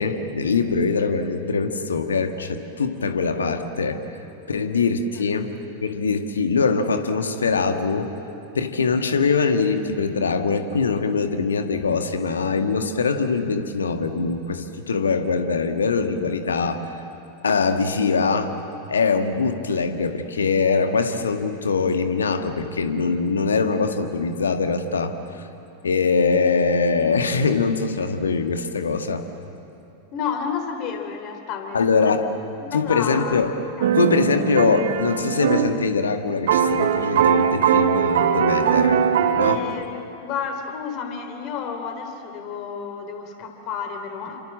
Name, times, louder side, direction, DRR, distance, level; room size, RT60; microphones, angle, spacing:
voice 1, 0.0-4.0 4.5-5.5 5.8-8.1 8.5-16.8 17.4-18.5 18.9-25.1 25.8-29.2 31.7-32.3 32.7-33.5 34.0-39.0 39.3-39.6, left 4 dB, 70° left, 7 dB, 1.8 m, -22 dB
voice 2, 30.1-32.2 32.6-33.4 33.8-33.9 39.4-44.4, left 6 dB, 40° left, 5 dB, 3.6 m, -31 dB
sound 1, 33.8-35.8 36.0-36.1 36.5-39.6, right 8 dB, 60° right, 1.3 m, -20 dB
29.5 x 26.0 x 7.6 m, 2.8 s
figure-of-eight pair, 90°, 0 cm